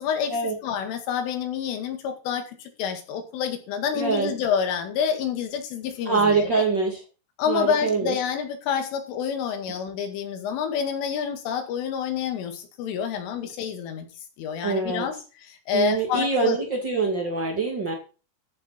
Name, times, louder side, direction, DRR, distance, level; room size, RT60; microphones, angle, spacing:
voice 1, 0.0-0.4 0.6-6.6 7.4-14.1 14.4-15.1 15.4-16.6, left 7 dB, 75° left, 6 dB, 4.5 m, -28 dB
voice 2, 3.9-4.3 6.0-7.0 7.5-8.1 14.6-15.1 15.7-17.9, right 4 dB, 70° right, 1 dB, 1.0 m, -24 dB
14.0 x 6.5 x 5.8 m, 0.34 s
omnidirectional pair, 5.9 m